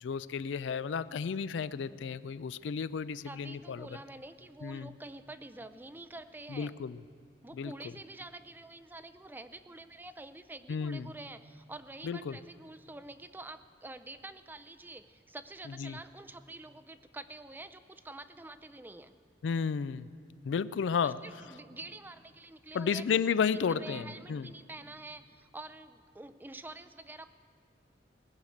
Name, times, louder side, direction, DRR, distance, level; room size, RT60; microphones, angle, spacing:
voice 1, 0.0-3.9 4.6-4.9 6.5-7.0 7.5-7.7 10.7-11.1 12.0-12.4 15.8-16.0 19.4-20.1 20.4-21.2 22.7-24.5, left 6 dB, 80° left, 16 dB, 0.4 m, -32 dB
voice 2, 3.2-6.8 7.4-19.1 21.0-23.0 23.4-27.3, right 2 dB, 10° right, 10 dB, 0.4 m, -47 dB
19.5 x 6.5 x 8.4 m, 2.2 s
head